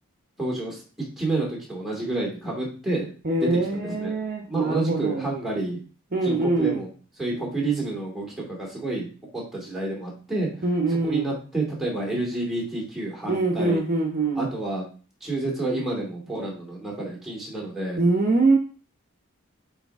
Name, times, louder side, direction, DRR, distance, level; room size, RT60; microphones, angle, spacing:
voice 1, 0.4-0.8 1.2-3.1 3.4-4.1 4.5-5.8 6.2-6.9 7.2-9.1 9.3-13.8 14.3-14.8 15.2-18.0, right 2 dB, ahead, -3 dB, 2.5 m, -29 dB
voice 2, 3.2-5.3 6.1-6.8 10.6-11.3 13.3-14.5 18.0-18.6, right 3 dB, 40° right, 1 dB, 0.9 m, -23 dB
8.3 x 4.1 x 3.6 m, 0.38 s
head